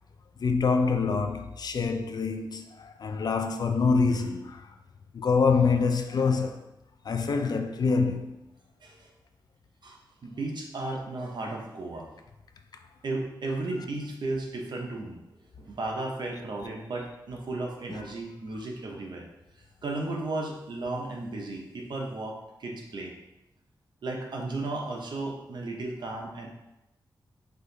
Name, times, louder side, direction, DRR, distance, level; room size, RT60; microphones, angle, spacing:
voice 1, 0.4-4.7 5.1-6.7 7.1-8.4 17.9-18.0, left 4 dB, 55° left, 0.4 m, -26 dB
voice 2, 9.8-12.1 13.0-15.2 15.6-19.3 19.6-23.1 24.0-26.5, right 2 dB, 65° right, 0.9 m, -34 dB
4.9 x 2.6 x 3.9 m
wide cardioid pair, 110°, 8 cm